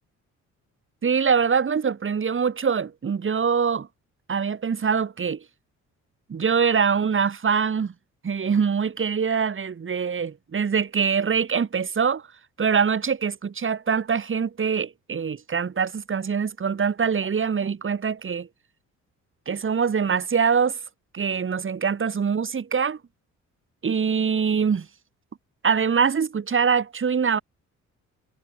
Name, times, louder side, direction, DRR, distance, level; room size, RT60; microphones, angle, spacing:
voice 1, 1.0-3.9 4.3-5.4 6.3-7.9 8.2-12.2 12.6-18.5 19.5-20.8 21.1-23.0 23.8-24.9 25.6-27.4, right 6 dB, 40° right, 6.1 m, -23 dB
cardioid pair, 90°, 30 cm